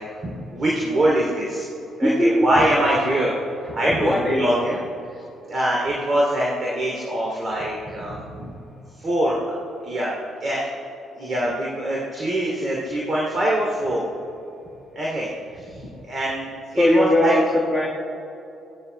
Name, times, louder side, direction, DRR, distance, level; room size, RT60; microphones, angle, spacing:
voice 1, 0.0-1.7 2.0-3.4 3.6-4.8 5.1-5.2 5.5-8.5 9.0-9.5 9.8-10.1 10.4-10.7 11.2-14.1 14.9-17.4, right 1 dB, 40° right, -4 dB, 2.9 m, -24 dB
voice 2, 2.0-2.5 3.8-4.6 16.8-17.9, left 1 dB, 5° left, -4 dB, 1.6 m, -20 dB
17.5 x 12.5 x 2.2 m, 2.8 s
hypercardioid pair, 45°, 0 cm